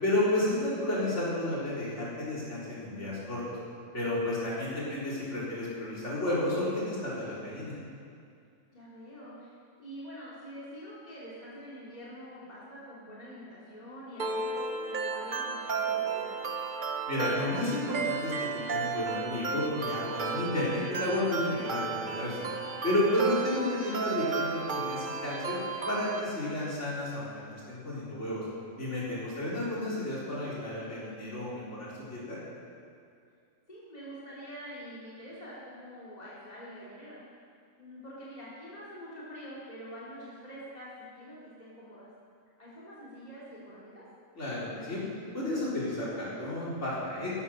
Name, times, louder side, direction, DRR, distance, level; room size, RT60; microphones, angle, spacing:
voice 1, 0.0-3.6 3.9-7.7 17.1-22.5 22.8-25.6 25.9-28.4 28.8-32.4 44.4-45.0 45.3-47.3, left 1 dB, 55° left, -7 dB, 4.4 m, -32 dB
voice 2, 8.7-9.5 9.8-16.5 21.5-21.7 23.3-23.9 29.4-29.6 33.7-37.2 37.8-42.1 42.6-44.0, equal, 30° left, -8 dB, 3.1 m, -46 dB
sound 1, 14.2-26.2, right 4 dB, 40° right, 1.0 m, -33 dB
14.5 x 12.0 x 6.4 m, 2.4 s
omnidirectional pair, 1.4 m